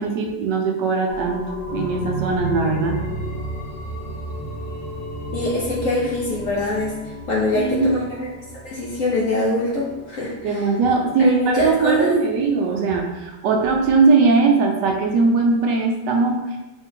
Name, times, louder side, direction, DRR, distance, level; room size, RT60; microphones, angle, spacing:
voice 1, 0.0-1.4 1.7-3.0 7.5-7.9 10.4-16.6, right 4 dB, 75° right, 2 dB, 1.1 m, -19 dB
sound 1, 1.1-10.4 10.8-10.9, right 1 dB, 80° left, 1.4 m, -32 dB
voice 2, 5.3-8.3 8.6-10.7 11.2-12.1, left 2 dB, 60° left, -5 dB, 0.8 m, -23 dB
3.4 x 3.2 x 3.7 m, 1.0 s
omnidirectional pair, 2.0 m